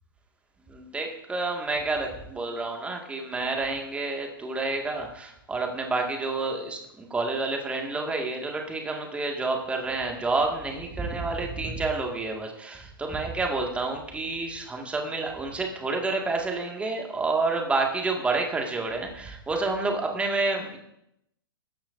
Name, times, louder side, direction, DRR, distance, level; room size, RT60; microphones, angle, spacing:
voice 1, 0.7-20.8, right 3 dB, 10° right, 2 dB, 2.0 m, -29 dB
21.0 x 10.0 x 2.7 m, 0.81 s
figure-of-eight pair, 105°, 12 cm